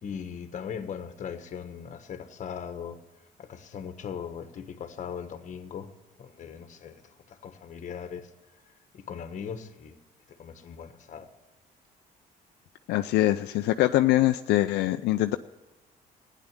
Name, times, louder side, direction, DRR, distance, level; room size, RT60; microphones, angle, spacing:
voice 1, 0.0-3.0 3.4-5.9 6.2-8.3 8.9-10.0 10.4-11.3, left 7 dB, 45° left, 9 dB, 1.5 m, -39 dB
voice 2, 12.9-15.4, left 15 dB, 80° left, 8 dB, 0.5 m, -23 dB
15.5 x 10.0 x 9.0 m, 1.1 s
cardioid pair, 110°, 17 cm